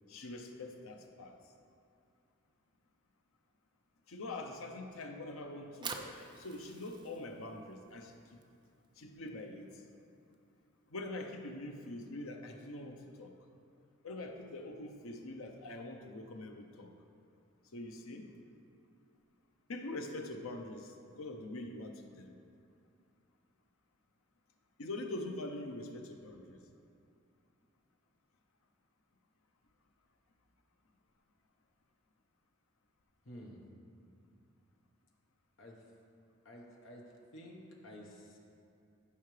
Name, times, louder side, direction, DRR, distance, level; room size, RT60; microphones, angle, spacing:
voice 1, 0.1-1.3 4.1-8.2 9.0-9.7 10.9-13.3 14.0-16.9 17.7-18.3 19.7-20.9 21.2-22.3 24.8-26.6, left 2 dB, 85° left, 4 dB, 0.8 m, -44 dB
Fire, 5.5-11.7, right 5 dB, 20° right, 0.4 m, -50 dB
voice 2, 33.2-33.6 35.6-35.7 36.4-37.0 37.3-38.4, equal, 65° left, -1 dB, 1.3 m, -51 dB
12.5 x 5.6 x 3.3 m, 2.5 s
head